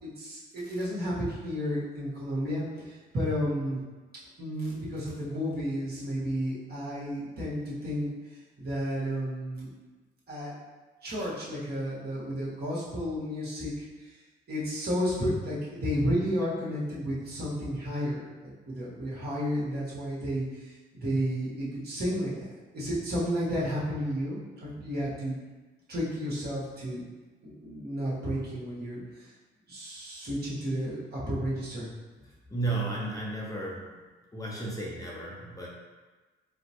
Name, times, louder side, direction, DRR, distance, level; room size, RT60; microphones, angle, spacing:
voice 1, 0.0-3.8 4.4-8.1 8.6-9.7 10.3-10.5 11.0-14.1 14.5-22.4 22.7-25.4 25.9-27.0 27.4-29.3 29.7-31.9, equal, 55° right, -8 dB, 1.4 m, -32 dB
voice 2, 32.5-33.9 34.3-35.7, right 2 dB, 15° left, -4 dB, 0.6 m, -33 dB
4.2 x 2.1 x 2.9 m, 1.3 s
cardioid pair, 90°, 20 cm